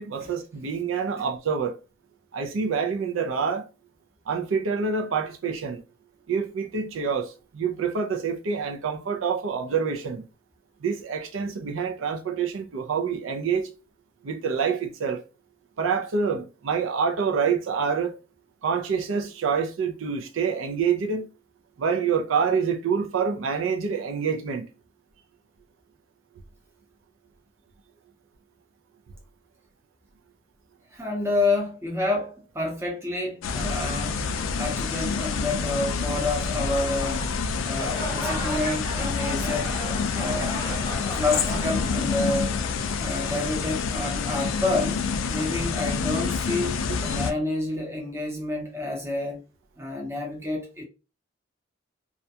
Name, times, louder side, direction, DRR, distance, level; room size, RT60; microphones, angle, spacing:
voice 1, 0.0-1.7 2.3-3.7 4.3-5.8 6.3-10.3 10.8-13.7 14.2-15.2 15.8-18.1 18.6-21.3 21.8-24.7, right 6 dB, 85° right, 0.4 m, -27 dB
voice 2, 30.9-34.2 34.6-37.3 37.6-39.7 40.1-40.5 41.2-42.6 43.0-45.0 45.3-49.4 49.8-50.9, left 2 dB, 15° right, 0.6 m, -29 dB
sound 1, 33.4-47.3, left 5 dB, 85° left, 0.3 m, -28 dB
sound 2, 37.6-42.9, left 1 dB, 20° left, 0.9 m, -34 dB
2.3 x 2.2 x 2.7 m
head